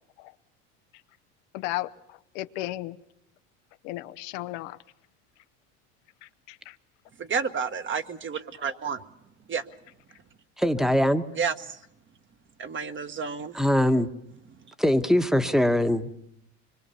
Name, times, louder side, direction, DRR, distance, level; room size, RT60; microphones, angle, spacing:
voice 1, 1.5-1.9 2.3-3.0 3.8-4.8 6.5-6.7, left 16 dB, 75° left, 12 dB, 0.9 m, -34 dB
voice 2, 7.2-9.0 9.5-9.6 11.3-11.8 12.6-13.6, right 6 dB, 30° right, 9 dB, 1.3 m, -30 dB
voice 3, 10.6-11.2 13.5-14.1 14.8-16.1, left 1 dB, ahead, 10 dB, 1.2 m, -22 dB
24.5 x 22.5 x 7.0 m, 0.77 s
supercardioid pair, 90°, 37 cm